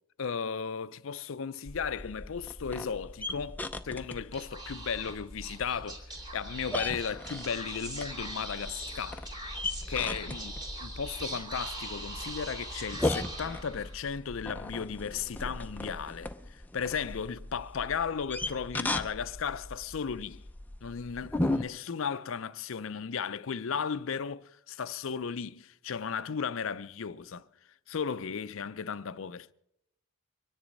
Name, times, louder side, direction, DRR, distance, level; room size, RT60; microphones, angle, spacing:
voice 1, 0.2-9.3 9.9-10.5 10.8-20.4 20.8-27.4 27.9-29.5, left 6 dB, 70° left, 0.5 m, -35 dB
sound 1, 1.7-21.6, left 2 dB, 10° left, 0.5 m, -38 dB
Speech / Whispering, 4.3-14.1, right 1 dB, 20° right, 2.7 m, -42 dB
24.0 x 10.0 x 5.3 m
head